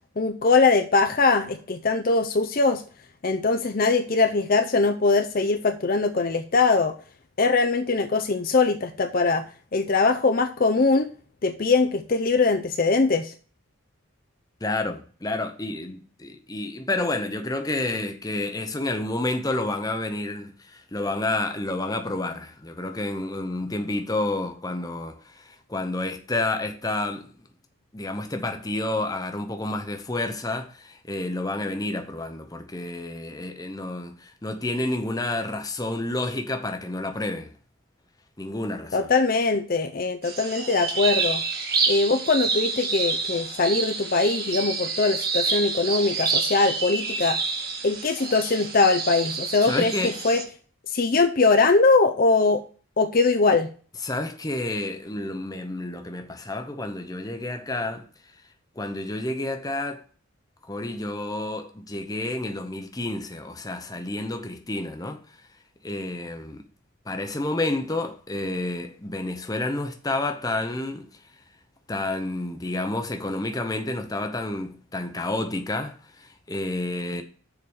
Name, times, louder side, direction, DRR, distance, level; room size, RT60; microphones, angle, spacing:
voice 1, 0.2-2.8 3.2-6.9 7.4-9.4 9.7-11.1 11.4-13.3 38.9-41.4 41.9-47.4 47.8-50.4 50.9-52.6 53.0-53.7, left 3 dB, 45° left, 0.6 m, -21 dB
voice 2, 14.6-27.3 27.9-37.5 38.4-39.1 49.6-50.2 54.0-58.1 58.8-60.0 60.7-65.2 65.8-66.6 67.1-71.1 71.9-77.2, left 2 dB, 15° left, 0.8 m, -30 dB
sound 1, 40.2-50.4, right 4 dB, 45° right, 1.8 m, -28 dB
7.0 x 4.9 x 7.1 m
head